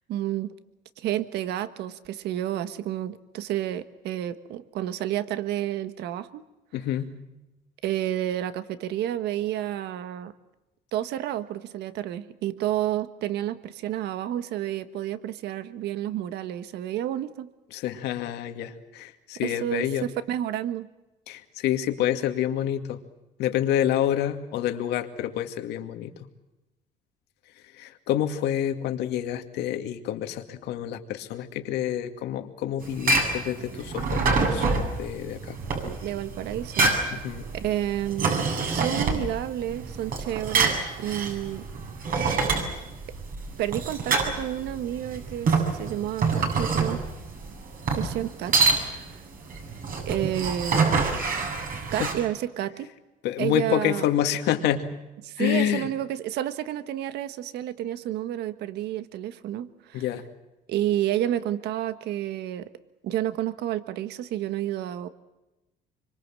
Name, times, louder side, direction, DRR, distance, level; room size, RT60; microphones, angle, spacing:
voice 1, 0.1-0.5 1.0-6.4 7.8-10.3 10.9-17.5 19.4-20.9 35.8-37.2 37.5-41.6 43.6-47.0 47.9-48.6 48.8-49.2 50.0-50.9 51.9-52.9 53.4-54.1 55.2-60.0 60.7-62.7 63.0-65.1, right 12 dB, 80° right, 12 dB, 1.4 m, -30 dB
voice 2, 6.7-7.1 17.7-20.0 21.3-23.0 23.4-26.3 27.8-35.6 37.1-37.5 52.0-52.1 53.2-54.9 55.4-55.9 59.9-60.2, left 11 dB, 85° left, 6 dB, 2.3 m, -28 dB
sound 1, 32.8-52.1, right 4 dB, 55° right, 7.8 m, -26 dB
26.0 x 24.5 x 7.6 m, 1.0 s
cardioid pair, 110°, 17 cm